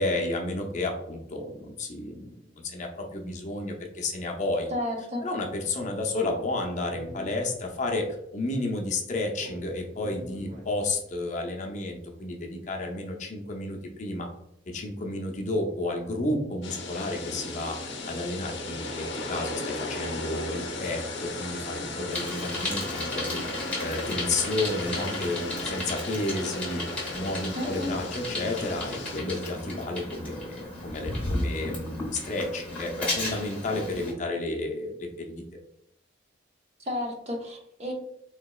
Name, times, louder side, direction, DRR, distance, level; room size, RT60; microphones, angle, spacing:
voice 1, 0.0-2.4 2.6-4.7 5.2-8.1 8.3-14.3 14.7-23.4 23.8-26.8 27.1-35.4, left 2 dB, 40° left, 2 dB, 0.5 m, -31 dB
voice 2, 4.7-5.3 27.5-27.9 36.8-37.9, left 1 dB, 35° right, 2 dB, 0.6 m, -32 dB
Speech, 6.2-8.1 9.4-11.1, right 1 dB, 55° right, 0.9 m, -45 dB
sound 1, 16.6-29.2, left 2 dB, 80° left, 0.7 m, -36 dB
Bicycle, 22.1-34.1, left 2 dB, 10° left, 0.9 m, -35 dB
3.9 x 2.9 x 2.3 m, 0.77 s
head